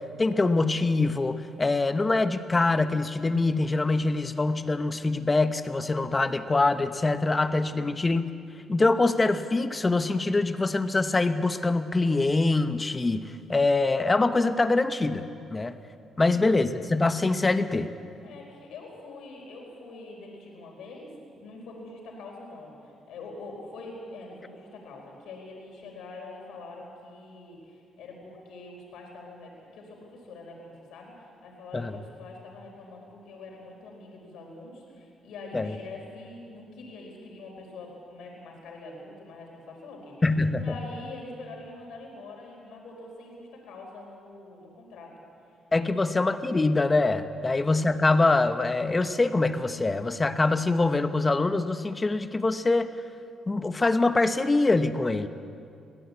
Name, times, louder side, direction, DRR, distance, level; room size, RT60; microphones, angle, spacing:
voice 1, 0.0-8.2 8.7-15.8 16.2-17.9 31.7-31.9 35.5-35.7 40.2-40.6 45.7-52.9 53.5-55.3, left 3 dB, 25° left, 10 dB, 1.1 m, -24 dB
voice 2, 18.2-40.1 40.6-45.1 45.9-46.0 55.2-55.3, left 2 dB, 80° left, 0 dB, 4.4 m, -44 dB
21.5 x 16.0 x 8.4 m, 2.5 s
cardioid pair, 90°, 0 cm